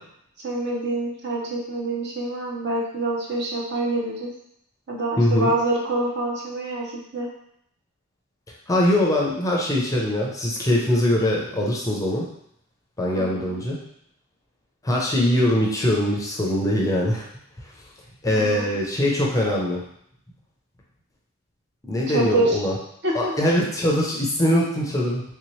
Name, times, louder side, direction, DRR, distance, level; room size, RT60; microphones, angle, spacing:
voice 1, 0.4-4.3 4.9-7.3 13.1-13.6 18.3-18.7 22.1-22.6 23.0-23.5, right 2 dB, 50° right, -2 dB, 0.7 m, -26 dB
voice 2, 5.2-5.5 8.7-12.3 13.0-13.8 14.8-17.3 18.2-19.8 21.9-22.7 23.1-25.2, left 1 dB, 15° left, -3 dB, 0.5 m, -22 dB
3.2 x 2.8 x 3.1 m, 0.72 s
head